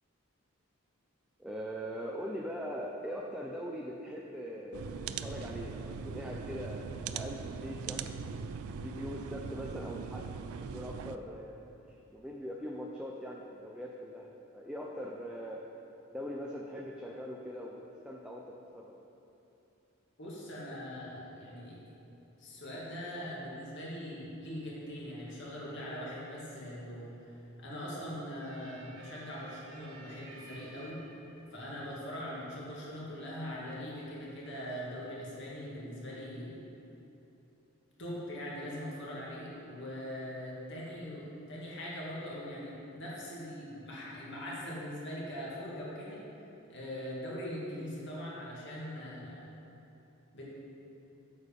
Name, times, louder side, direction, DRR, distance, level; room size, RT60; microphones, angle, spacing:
voice 1, 1.4-8.1 8.7-10.3 10.5-11.6 11.9-15.6 16.1-18.9, equal, 5° right, -2 dB, 0.5 m, -41 dB
sound 1, 4.7-11.2, right 5 dB, 85° right, 0.4 m, -40 dB
voice 2, 20.2-21.8 22.4-31.0 31.5-36.5 38.0-46.3 46.7-49.5 50.3-50.4, equal, 55° left, -6 dB, 2.3 m, -41 dB
sound 2, 24.4-35.7, right 2 dB, 70° right, 1.0 m, -59 dB
8.2 x 7.0 x 5.3 m, 2.9 s
head